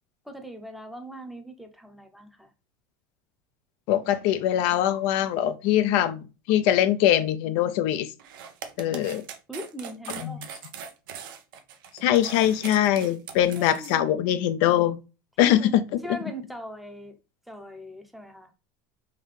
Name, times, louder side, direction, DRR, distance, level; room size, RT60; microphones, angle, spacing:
voice 1, 0.2-2.5 9.5-10.4 13.5-14.1 15.4-17.2 17.5-18.5, right 1 dB, ahead, 0.7 m, -40 dB
voice 2, 3.9-6.2 6.5-8.1 8.8-9.2 10.2-10.5 12.0-15.0 15.4-15.8, left 11 dB, 65° left, 0.4 m, -22 dB
sound 1, 8.2-14.0, right 7 dB, 90° right, 0.6 m, -41 dB
3.6 x 2.7 x 3.2 m
supercardioid pair, 125°, 11 cm